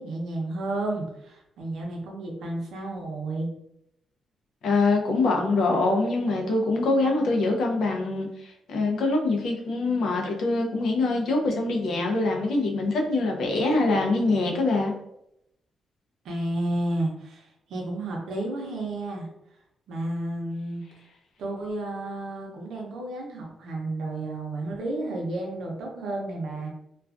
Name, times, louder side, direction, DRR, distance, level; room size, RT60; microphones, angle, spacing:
voice 1, 0.0-3.5 16.2-19.3 19.9-20.8 21.4-26.7, right 2 dB, 85° right, 0 dB, 0.6 m, -31 dB
voice 2, 4.6-14.9, left 2 dB, 75° left, 1 dB, 0.5 m, -24 dB
2.4 x 2.2 x 2.4 m, 0.81 s
cardioid pair, 130°, 0 cm